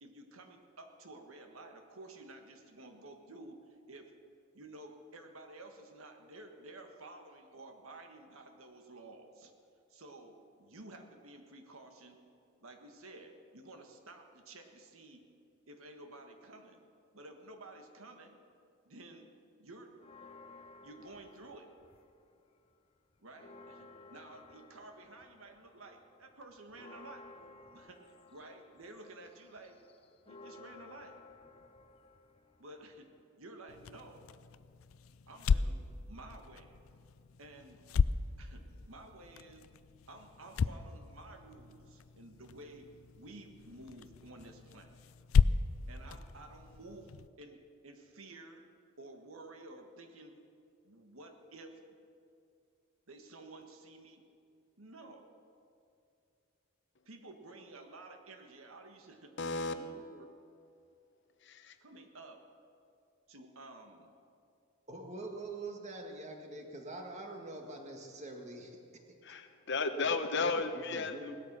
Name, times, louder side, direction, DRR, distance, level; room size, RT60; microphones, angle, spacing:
voice 1, 0.0-4.1 4.5-9.5 9.9-12.2 12.6-15.2 15.7-16.9 17.1-18.4 18.8-19.3 19.6-19.9 20.8-21.7 23.2-27.3 27.7-29.8 30.2-31.2 32.6-33.1 33.4-34.3 35.3-36.8 37.4-37.8 38.4-39.7 40.1-45.0 45.9-48.6 49.0-50.4 50.8-51.8 53.1-54.2 54.8-55.3 57.0-59.4 59.7-60.3 61.8-62.4 63.3-64.1, right 2 dB, 70° right, 5 dB, 1.6 m, -52 dB
sound 1, 20.0-22.3 22.7-33.2, left 3 dB, 25° left, 0.7 m, -56 dB
sound 2, 33.7-47.3, left 5 dB, 70° left, 0.4 m, -35 dB
voice 2, 59.4-59.7 61.4-61.8 69.2-71.4, left 3 dB, 50° left, 8 dB, 0.9 m, -34 dB
voice 3, 64.9-68.8 70.8-71.4, right 2 dB, 30° right, 2 dB, 1.8 m, -44 dB
18.0 x 13.0 x 6.1 m, 2.5 s
head